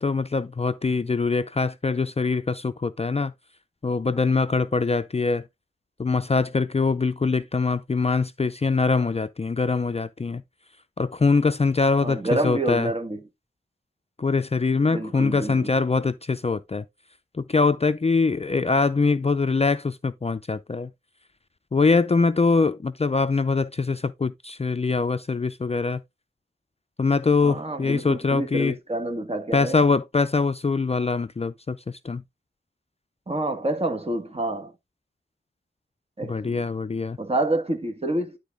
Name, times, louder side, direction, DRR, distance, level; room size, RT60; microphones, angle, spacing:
voice 1, 0.0-3.3 3.8-5.5 6.0-10.4 11.0-12.9 14.2-16.8 17.3-20.9 21.7-26.0 27.0-28.8 29.5-32.2 36.2-37.2, left 4 dB, 30° left, 0.4 m, -23 dB
voice 2, 12.0-13.2 14.9-15.7 27.4-29.8 33.3-34.7 36.2-36.6 37.2-38.4, right 1 dB, 30° right, 1.8 m, -28 dB
11.5 x 3.9 x 3.5 m
wide cardioid pair, 90°, 20 cm